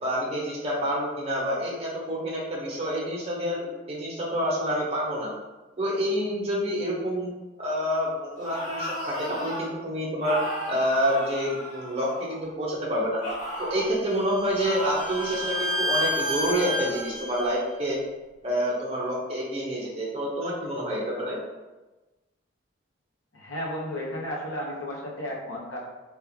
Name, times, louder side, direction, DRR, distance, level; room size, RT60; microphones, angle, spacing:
voice 1, 0.0-5.3 5.8-7.3 7.6-10.4 10.7-13.2 13.6-18.0 18.4-21.4, equal, 30° right, -5 dB, 0.7 m, -28 dB
sound 1, 8.3-9.7 10.2-12.5 13.2-13.9 14.6-17.1, equal, 40° left, 0.8 m, -35 dB
Bowed string instrument, 13.7-17.5, left 1 dB, 75° right, 0.6 m, -30 dB
voice 2, 23.3-25.8, left 1 dB, 85° left, -3 dB, 0.8 m, -33 dB
3.0 x 2.3 x 3.5 m, 1.1 s
head